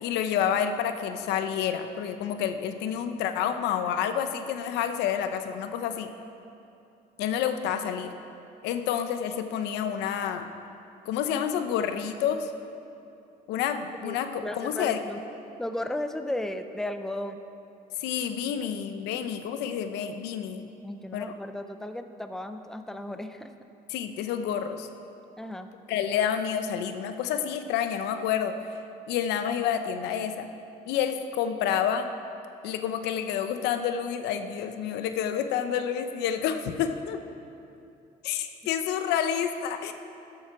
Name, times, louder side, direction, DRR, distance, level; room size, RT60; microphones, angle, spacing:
voice 1, 0.0-6.1 7.2-8.1 8.6-10.5 11.1-12.5 13.5-15.0 18.0-20.7 21.1-21.3 23.9-24.9 25.9-28.6 29.1-30.5 30.9-32.1 32.6-37.2 38.2-39.9, left 8 dB, 90° left, 8 dB, 0.8 m, -29 dB
voice 2, 14.0-15.3 15.6-17.4 20.8-23.5 25.4-25.7, left 1 dB, 5° left, 8 dB, 0.6 m, -35 dB
13.5 x 7.7 x 5.9 m, 2.8 s
cardioid pair, 110°, 17 cm